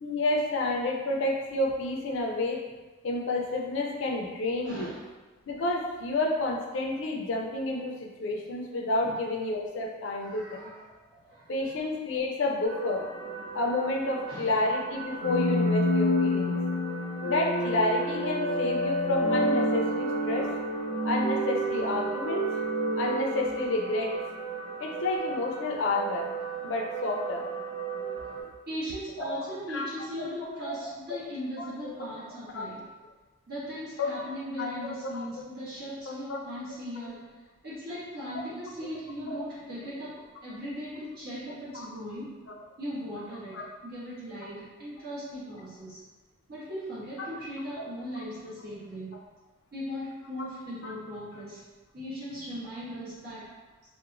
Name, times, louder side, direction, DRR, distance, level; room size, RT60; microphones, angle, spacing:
voice 1, 0.0-2.6 3.0-4.9 5.5-10.7 11.5-13.0 13.5-16.6 17.3-20.5 21.0-22.4 23.0-24.2 24.8-26.3 26.6-27.5 28.4-28.5 29.2-29.3 29.7-29.8 30.2-30.9 31.8-31.9 32.5-32.7 34.0-34.1 34.6-35.2 36.1-36.2 39.3-39.4 41.7-41.9 43.5-43.6 47.2-47.3 50.8-50.9, left 2 dB, 65° left, 0 dB, 0.4 m, -30 dB
voice 2, 4.6-5.1 9.0-9.2 10.2-11.7 14.3-14.6 28.7-32.9 33.5-42.4 42.8-46.0 46.5-49.2 49.7-51.6 51.9-53.6, equal, 50° right, -11 dB, 1.2 m, -39 dB
sound 1, 12.6-28.4, right 6 dB, 30° right, 0.4 m, -38 dB
sound 2, 15.2-24.2, equal, 85° right, 0.8 m, -28 dB
2.9 x 2.1 x 2.5 m, 1.3 s
head